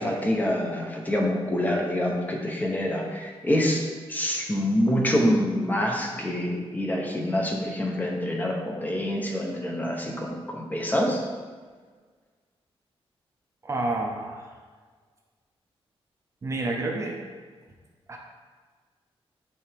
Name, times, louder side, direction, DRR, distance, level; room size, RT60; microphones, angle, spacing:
voice 1, 0.0-11.2, left 1 dB, 15° left, 0 dB, 0.7 m, -26 dB
voice 2, 13.6-14.5 16.4-17.2 18.1-18.2, right 2 dB, 30° right, 1 dB, 0.5 m, -29 dB
8.4 x 3.4 x 3.4 m, 1.5 s
wide cardioid pair, 180°, 10 cm